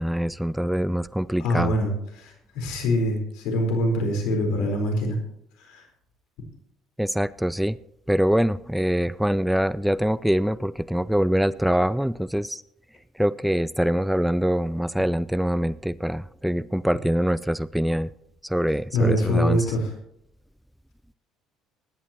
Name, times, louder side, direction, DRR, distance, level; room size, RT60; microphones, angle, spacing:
voice 1, 0.0-1.8 7.0-7.8 8.1-12.6 13.2-18.1 18.4-19.7, equal, ahead, 19 dB, 0.4 m, -24 dB
voice 2, 1.4-1.9 2.2-5.2 5.6-5.8 18.9-19.9, equal, 70° left, 3 dB, 4.2 m, -24 dB
20.0 x 11.0 x 3.0 m, 0.76 s
hypercardioid pair, 65°, 0 cm